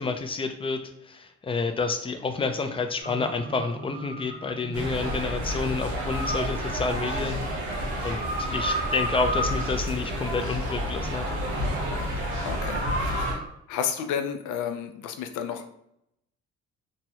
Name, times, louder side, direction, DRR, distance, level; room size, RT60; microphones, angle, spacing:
voice 1, 0.0-7.4 8.0-11.3, left 4 dB, 20° left, 7 dB, 0.4 m, -29 dB
sound 1, 3.0-13.5, right 1 dB, 30° right, 0.9 m, -36 dB
sound 2, 4.7-13.4, equal, 75° right, 1.1 m, -30 dB
voice 2, 12.4-15.7, left 8 dB, 80° left, 6 dB, 0.5 m, -32 dB
3.0 x 2.3 x 2.8 m, 0.76 s
cardioid pair, 90°, 30 cm